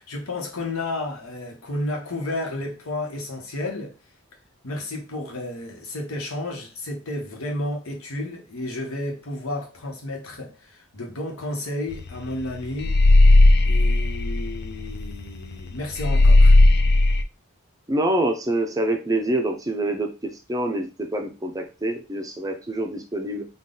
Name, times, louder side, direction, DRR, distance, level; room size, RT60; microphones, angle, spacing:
voice 1, 0.0-3.9 4.6-13.0 13.6-16.6, left 1 dB, 85° left, 1.1 m, -32 dB
sound 1, 11.9-12.1 12.4-15.2 15.5-15.6 16.0-17.2, left 2 dB, 45° left, 0.3 m, -15 dB
voice 2, 17.9-23.5, right 1 dB, 15° right, 0.5 m, -26 dB
3.7 x 2.3 x 3.8 m
head